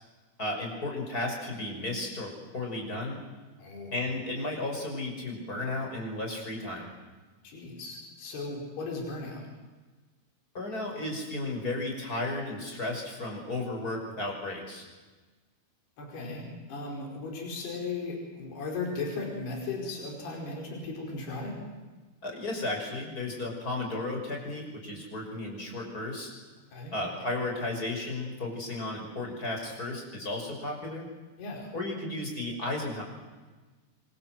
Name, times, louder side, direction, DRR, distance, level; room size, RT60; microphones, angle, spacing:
voice 1, 0.4-3.2 3.9-6.9 10.5-14.8 22.2-26.3 26.9-31.1 31.7-33.0, left 2 dB, 20° left, 1 dB, 6.1 m, -34 dB
voice 2, 3.6-3.9 7.4-9.4 16.0-21.6 26.7-26.9 31.4-31.7, left 3 dB, 80° left, 0 dB, 6.9 m, -36 dB
28.0 x 25.5 x 7.8 m, 1.3 s
omnidirectional pair, 4.6 m